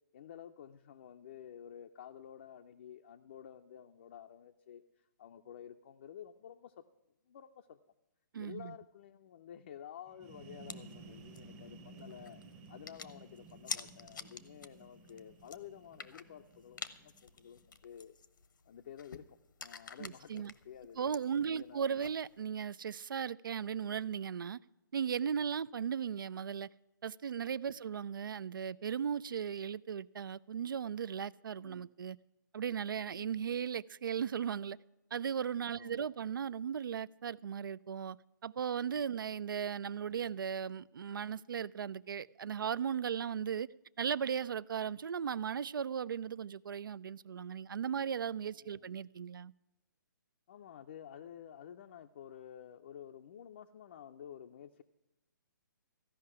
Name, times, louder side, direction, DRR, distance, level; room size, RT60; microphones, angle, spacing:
voice 1, 0.1-6.8 7.3-7.8 8.4-12.4 12.7-18.2 18.7-22.0 27.7-27.9 31.6-31.8 33.1-33.4 35.7-36.1 39.3-39.4 48.5-48.9 50.5-54.8, left 9 dB, 35° left, 0.5 m, -52 dB
voice 2, 8.3-8.7 20.0-20.5 21.0-24.6 24.9-26.7 27.0-32.2 32.5-34.8 35.1-38.2 38.4-43.7 44.0-49.5, right 7 dB, 85° right, 0.4 m, -37 dB
sound 1, 10.1-17.7, right 3 dB, 15° right, 0.8 m, -55 dB
sound 2, 10.7-22.4, left 6 dB, 75° left, 0.9 m, -50 dB
14.5 x 5.7 x 9.7 m
hypercardioid pair, 165°, 11 cm